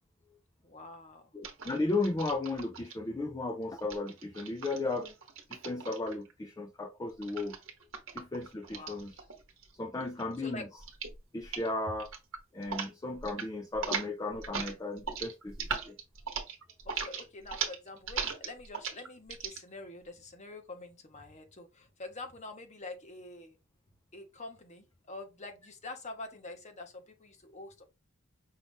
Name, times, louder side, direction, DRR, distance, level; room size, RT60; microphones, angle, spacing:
voice 1, 0.6-1.3 8.7-9.0 10.4-10.6 16.8-23.6 24.1-27.8, left 2 dB, 30° left, 1.0 m, -46 dB
voice 2, 1.3-5.1 5.5-7.6 8.1-9.1 9.8-10.7 11.3-12.1 12.5-16.0, left 2 dB, 15° left, 0.4 m, -35 dB
sound 1, 1.4-2.9 3.8-6.3 7.2-9.7 10.0-10.4 10.8-11.2 11.4-11.7 12.0-12.9 13.2-13.5 13.7-19.6, right 6 dB, 60° right, 1.0 m, -39 dB
5.6 x 2.5 x 3.5 m
head